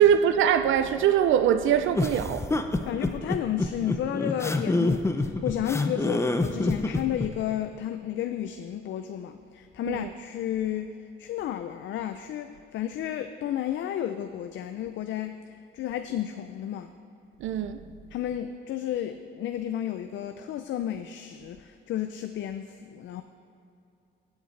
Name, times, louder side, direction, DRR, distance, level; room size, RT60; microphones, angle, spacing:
voice 1, 0.0-2.5 9.9-10.1 17.4-17.8, right 9 dB, 80° right, 0.5 m, -22 dB
sound 1, 1.9-7.3, left 2 dB, 15° left, 0.6 m, -26 dB
voice 2, 2.9-15.4 15.7-16.9 18.1-23.2, left 11 dB, 70° left, 0.5 m, -32 dB
16.5 x 8.2 x 3.3 m
cardioid pair, 90°, 20 cm